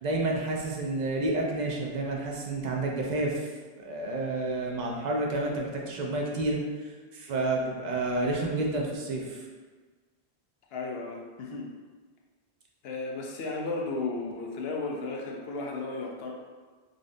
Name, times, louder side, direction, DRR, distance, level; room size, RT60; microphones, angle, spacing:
voice 1, 0.0-3.5 3.8-6.6 7.1-9.4, right 2 dB, 55° right, -1 dB, 0.5 m, -30 dB
voice 2, 10.7-11.7 12.8-16.3, left 3 dB, 70° left, -1 dB, 0.8 m, -34 dB
3.8 x 2.5 x 2.5 m, 1.4 s
omnidirectional pair, 1.1 m